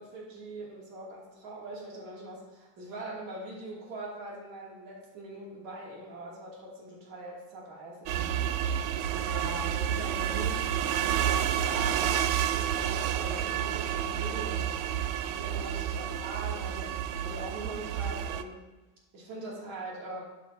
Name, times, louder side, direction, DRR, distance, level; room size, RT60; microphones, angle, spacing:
voice 1, 0.0-8.6 9.1-10.7 11.1-14.7 15.2-18.6 19.1-20.2, right 2 dB, 80° right, -4 dB, 2.8 m, -42 dB
sound 1, 8.1-18.4, right 10 dB, 65° right, 0.6 m, -30 dB
10.5 x 9.5 x 2.8 m, 1.1 s
cardioid pair, 175°, 47 cm